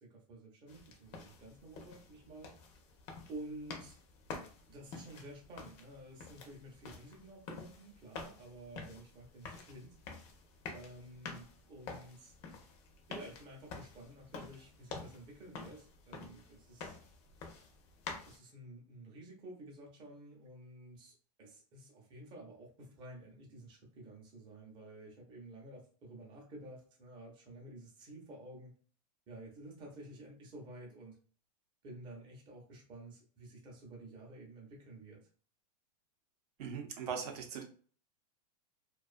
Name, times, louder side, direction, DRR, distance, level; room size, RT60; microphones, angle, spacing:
voice 1, 0.0-2.5 3.3-3.9 4.7-10.0 10.7-12.3 13.1-17.0 18.3-28.7 29.3-31.2 31.8-35.2, right 1 dB, 25° right, -2 dB, 0.6 m, -51 dB
sound 1, 0.7-18.4, left 4 dB, 30° left, 0.5 m, -49 dB
voice 2, 36.6-37.6, right 6 dB, 70° right, 4 dB, 0.7 m, -40 dB
2.4 x 2.3 x 2.4 m, 0.43 s
supercardioid pair, 160°, 21 cm